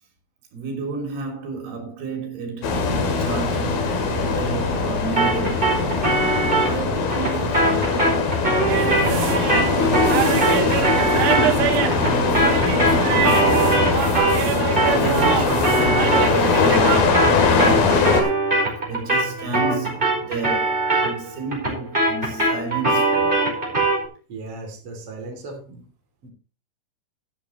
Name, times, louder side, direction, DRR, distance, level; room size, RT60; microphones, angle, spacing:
voice 1, 0.5-2.8 3.2-5.9 6.4-8.2 8.8-23.5, right 4 dB, 90° right, 5.1 m, -32 dB
sound 1, 2.6-18.2, left 4 dB, 70° left, 3.8 m, -21 dB
sound 2, 5.2-14.5 14.8-24.1, right 2 dB, 10° right, 4.8 m, -22 dB
sound 3, 8.7-17.0, right 9 dB, 65° right, 2.2 m, -26 dB
voice 2, 24.3-25.8 26.2-26.3, right 3 dB, 40° right, 3.8 m, -36 dB
13.0 x 12.5 x 3.1 m
omnidirectional pair, 4.5 m